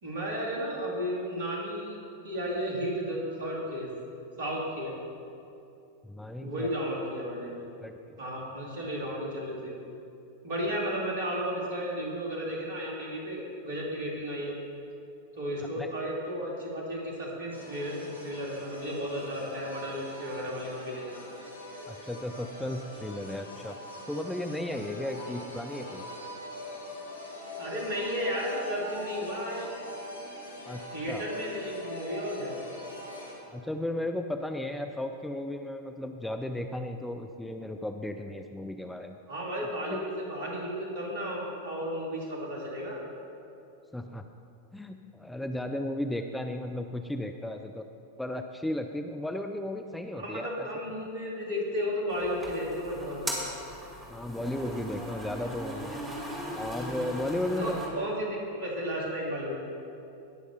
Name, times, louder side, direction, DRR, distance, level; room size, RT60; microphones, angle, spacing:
voice 1, 0.0-2.0 2.2-3.9 4.4-4.9 6.4-7.6 8.2-9.7 10.4-14.5 15.4-21.2 25.2-25.3 27.6-29.7 30.9-32.5 39.3-43.0 50.2-53.4 57.6-59.6, equal, 55° right, -3 dB, 2.6 m, -33 dB
voice 2, 6.0-6.7 7.8-8.2 15.8-15.9 21.9-23.8 24.1-26.0 30.7-31.3 33.5-39.2 39.9-40.0 43.9-44.2 44.7-47.9 48.2-50.7 54.1-56.0 56.5-57.7, left 1 dB, 5° left, 5 dB, 0.4 m, -35 dB
sound 1, 17.5-33.4, left 1 dB, 85° right, 2.5 m, -42 dB
sound 2, 52.1-57.9, equal, 15° right, 2.1 m, -38 dB
19.0 x 6.3 x 3.4 m, 2.7 s
figure-of-eight pair, 90°, 0 cm